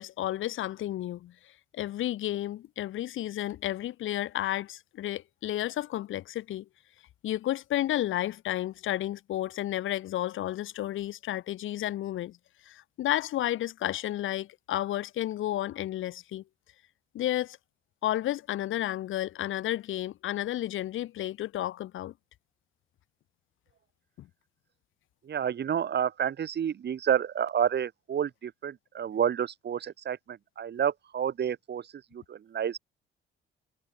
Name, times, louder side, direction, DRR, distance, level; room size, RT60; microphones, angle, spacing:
voice 1, 0.0-1.3 1.7-6.6 7.2-12.4 12.6-16.4 17.1-17.6 18.0-22.1 24.2-24.3, left 13 dB, 80° left, 5.0 m, -32 dB
voice 2, 25.3-31.8 32.1-32.8, right 8 dB, 60° right, 6.4 m, -29 dB
cardioid pair, 90°, 20 cm